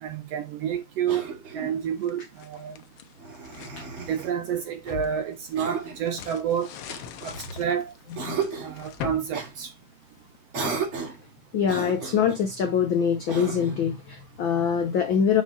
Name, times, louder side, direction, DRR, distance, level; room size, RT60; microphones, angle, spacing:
voice 1, 0.0-2.7 4.1-6.7 7.2-7.9 8.6-9.7, right 8 dB, 75° right, 1.5 m, -29 dB
Cough, 1.1-1.8 3.2-4.3 5.5-6.1 6.9-7.7 8.1-8.8 9.3-9.5 10.5-11.2 11.6-12.4 13.3-13.8, right 5 dB, 45° right, 3.6 m, -34 dB
sound 1, 1.8-3.8 4.3-10.4, left 10 dB, 70° left, 1.6 m, -42 dB
voice 2, 11.5-15.4, left 7 dB, 85° left, 1.0 m, -24 dB
7.1 x 5.0 x 4.1 m
omnidirectional pair, 3.6 m